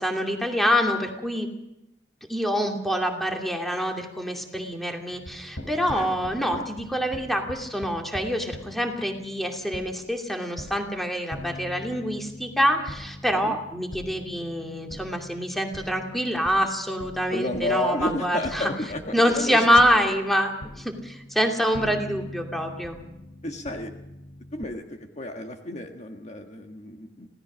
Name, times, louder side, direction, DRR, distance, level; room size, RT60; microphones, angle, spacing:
voice 1, 0.0-1.5 2.3-18.7 19.1-23.0, equal, ahead, 2 dB, 2.5 m, -26 dB
sound 1, 5.1-24.7, left 1 dB, 80° left, 3.5 m, -42 dB
voice 2, 17.3-19.8 23.4-23.9 24.5-27.3, left 1 dB, 40° left, 4 dB, 1.6 m, -31 dB
26.5 x 17.5 x 6.2 m, 0.88 s
head